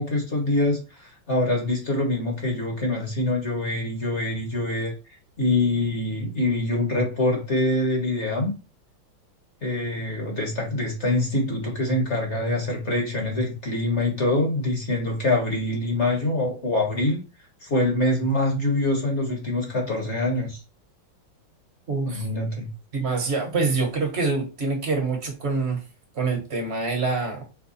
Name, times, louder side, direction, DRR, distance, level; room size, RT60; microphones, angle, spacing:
voice 1, 0.0-4.9 5.4-8.5 9.6-17.2 17.6-20.6 22.1-22.7, left 2 dB, 40° left, 0 dB, 1.2 m, -25 dB
voice 2, 21.9-22.3 22.9-25.8 26.1-27.4, right 4 dB, 40° right, 2 dB, 1.1 m, -25 dB
4.7 x 2.2 x 4.1 m, 0.31 s
omnidirectional pair, 2.3 m